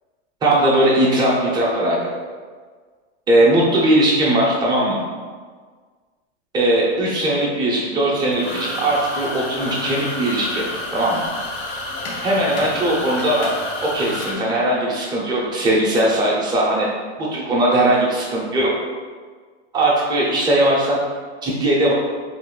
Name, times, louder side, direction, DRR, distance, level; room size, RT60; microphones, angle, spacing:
voice 1, 0.4-2.1 3.3-5.0 6.5-10.7 10.9-11.3 12.2-13.5 13.8-16.9 17.2-18.7 19.7-21.0 21.4-21.9, right 1 dB, 10° right, -5 dB, 0.6 m, -19 dB
sound 1, 8.3-14.3, left 2 dB, 65° left, 0.9 m, -29 dB
3.0 x 2.6 x 3.6 m, 1.5 s
supercardioid pair, 150°, 35 cm